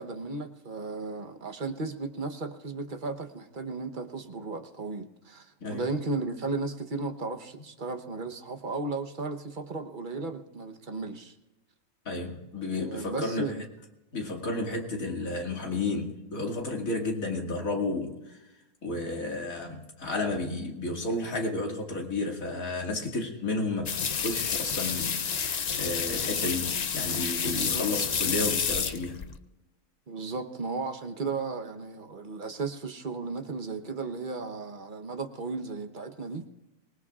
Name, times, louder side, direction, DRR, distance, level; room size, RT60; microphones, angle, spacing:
voice 1, 0.0-11.4 12.6-13.6 27.3-27.8 30.1-36.5, right 3 dB, 40° right, 1.1 m, -35 dB
voice 2, 12.1-13.6 14.1-18.4 18.8-29.2, left 2 dB, 80° left, 2.7 m, -32 dB
sound 1, 23.9-29.4, left 6 dB, 50° left, 0.5 m, -30 dB
25.0 x 19.5 x 2.4 m
omnidirectional pair, 1.4 m